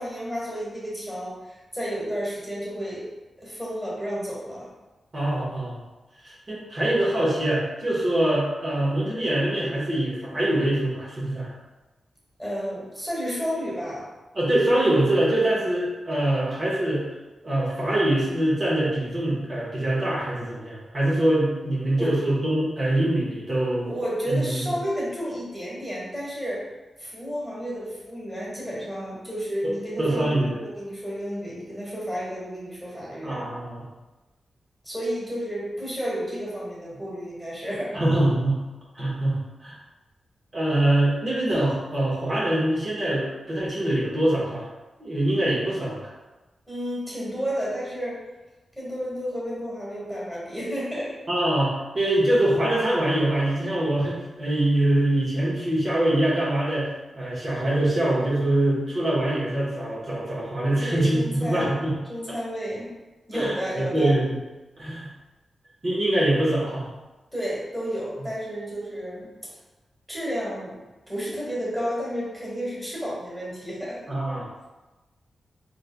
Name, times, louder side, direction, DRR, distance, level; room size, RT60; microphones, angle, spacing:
voice 1, 0.0-3.0 3.4-4.7 12.4-14.1 22.0-22.2 23.8-26.6 27.0-30.3 30.6-33.4 34.8-38.0 46.7-48.2 48.8-51.2 60.8-61.7 62.1-62.9 63.3-64.1 67.3-69.3 70.1-70.8 71.1-74.0, equal, ahead, -6 dB, 1.3 m, -31 dB
voice 2, 5.1-5.8 6.2-11.5 14.3-17.0 17.4-23.9 24.3-24.6 29.6-29.7 30.0-30.6 33.2-33.8 37.9-38.6 38.9-39.8 40.5-44.7 45.0-46.1 51.3-62.0 63.3-64.4 64.8-65.1 65.8-66.9 74.1-74.5, right 1 dB, 45° right, -7 dB, 1.1 m, -24 dB
3.8 x 3.2 x 2.2 m, 1.1 s
cardioid pair, 85°, 0 cm